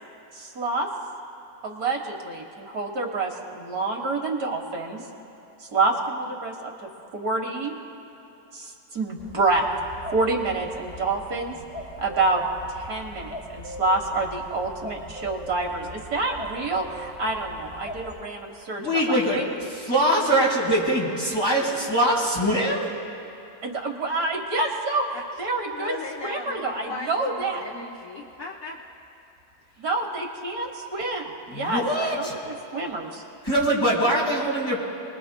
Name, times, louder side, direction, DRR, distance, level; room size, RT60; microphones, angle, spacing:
voice 1, 0.3-0.9 1.6-5.0 5.6-7.8 8.5-9.7 10.1-11.6 12.0-12.4 12.7-19.4 23.6-25.1 25.4-25.9 26.2-27.6 29.8-33.2, right 3 dB, 65° right, 1 dB, 1.8 m, -28 dB
sound 1, 9.2-18.2, equal, 5° right, 3.5 m, -40 dB
voice 2, 18.8-19.4 19.7-22.9 31.5-32.4 33.4-34.8, right 1 dB, 15° left, -5 dB, 4.3 m, -23 dB
voice 3, 25.7-28.8, left 3 dB, 60° left, -2 dB, 1.3 m, -37 dB
28.5 x 21.0 x 2.2 m, 3.0 s
omnidirectional pair, 1.8 m